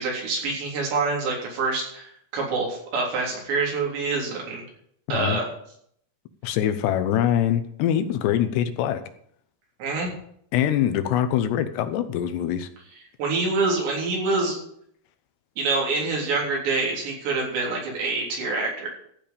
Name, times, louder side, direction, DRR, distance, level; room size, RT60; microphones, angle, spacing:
voice 1, 0.0-4.6 5.1-5.5 9.8-10.1 13.2-14.6 15.6-18.9, right 3 dB, 80° right, -2 dB, 5.9 m, -26 dB
voice 2, 5.1-5.4 6.4-9.0 10.5-12.7, left 10 dB, 80° left, 10 dB, 3.0 m, -23 dB
14.5 x 5.3 x 8.7 m, 0.67 s
omnidirectional pair, 4.9 m